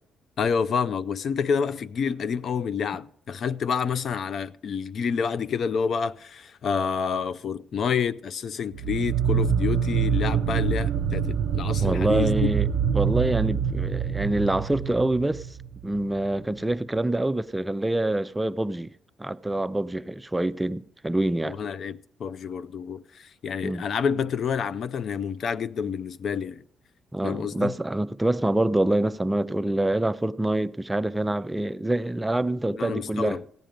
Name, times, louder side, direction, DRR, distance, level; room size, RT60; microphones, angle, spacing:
voice 1, 0.4-12.5 21.4-26.6 27.2-27.7 32.7-33.4, left 6 dB, 60° left, 0.4 m, -28 dB
sound 1, 8.7-16.1, right 7 dB, 75° right, 0.5 m, -25 dB
voice 2, 11.8-12.7 12.9-15.5 15.8-18.9 19.2-21.6 23.6-23.8 27.1-33.5, right 1 dB, 10° right, 0.4 m, -26 dB
15.5 x 9.1 x 5.1 m
cardioid pair, 90°, 0 cm